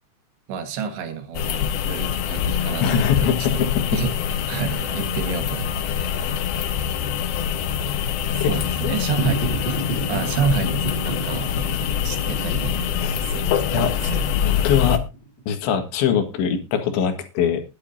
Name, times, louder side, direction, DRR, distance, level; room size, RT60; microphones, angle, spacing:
voice 1, 0.5-3.7 3.9-6.4 6.7-6.9 8.0-9.8 10.1-11.5 11.9-12.8 13.2-14.2, right 6 dB, 75° right, 8 dB, 3.7 m, -30 dB
sound 1, 1.3-15.0, left 8 dB, 70° left, 2.6 m, -24 dB
voice 2, 2.8-4.0 8.4-8.5 8.8-9.0 12.9-13.2 13.7-13.9 14.4-15.0 15.5-17.6, left 7 dB, 90° left, 7 dB, 4.1 m, -22 dB
sound 2, 9.1-15.6, right 2 dB, 20° left, 7.5 m, -32 dB
20.5 x 9.8 x 2.7 m, 0.27 s
omnidirectional pair, 5.1 m